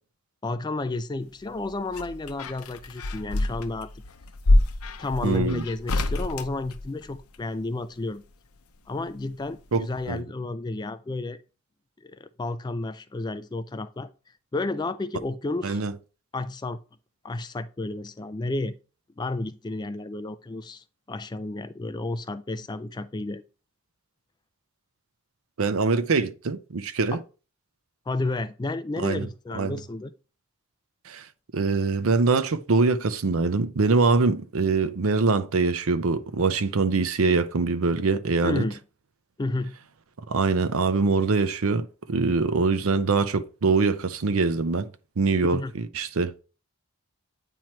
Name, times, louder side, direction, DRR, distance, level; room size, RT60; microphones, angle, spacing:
voice 1, 0.4-3.9 5.0-8.2 8.9-11.4 12.0-14.1 14.5-15.8 16.3-16.8 17.2-18.8 19.2-23.4 27.1-27.2 28.1-30.1 38.4-38.8 39.4-39.8 45.5-45.7, left 2 dB, 20° left, 0.3 m, -31 dB
sound 1, 1.4-7.4 8.8-9.7 10.0-10.1, left 1 dB, 85° left, 0.7 m, -27 dB
voice 2, 5.2-5.6 9.7-10.2 15.6-15.9 25.6-27.2 29.0-29.3 29.5-29.8 31.1-31.3 31.5-38.6 40.3-44.9 45.2-46.3, right 4 dB, 70° right, 0.6 m, -23 dB
9.0 x 3.0 x 4.4 m
head